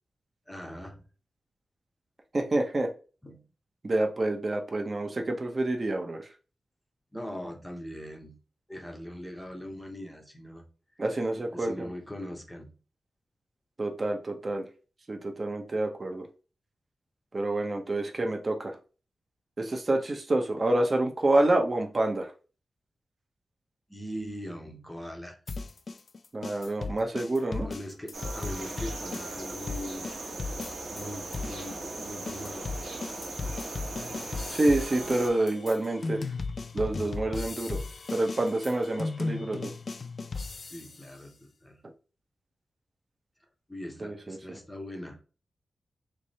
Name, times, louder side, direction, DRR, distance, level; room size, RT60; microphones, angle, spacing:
voice 1, 0.5-1.0 3.2-3.5 7.1-8.4 8.7-10.7 10.9-11.0 11.5-12.8 23.9-25.4 26.8-26.9 27.6-30.1 30.9-32.7 40.6-41.9 43.7-45.2, equal, 5° left, 3 dB, 0.8 m, -41 dB
voice 2, 2.3-2.9 3.8-6.3 11.0-11.7 13.8-14.6 15.1-16.3 17.3-18.8 19.6-22.3 26.3-27.7 34.5-36.2 36.7-37.8 38.1-39.7 44.0-44.6, right 2 dB, 30° right, 3 dB, 0.7 m, -28 dB
sound 1, 25.5-31.1 31.3-41.1, left 3 dB, 45° left, 0.3 m, -36 dB
sound 2, 28.1-35.3, right 2 dB, 55° right, 1.3 m, -39 dB
3.3 x 3.2 x 4.1 m, 0.35 s
wide cardioid pair, 165°, 0 cm